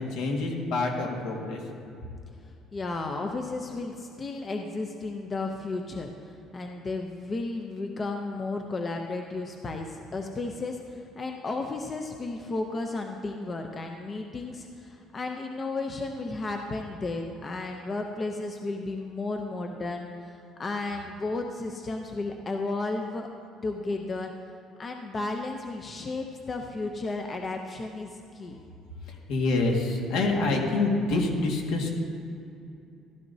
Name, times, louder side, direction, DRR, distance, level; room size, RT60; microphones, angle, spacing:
voice 1, 0.0-1.6 29.3-31.9, left 3 dB, 70° left, 0 dB, 1.8 m, -26 dB
voice 2, 2.7-23.3 23.6-24.3 24.8-28.6, left 3 dB, 25° left, 3 dB, 0.6 m, -33 dB
14.0 x 12.0 x 2.7 m, 2.6 s
cardioid pair, 155°, 0 cm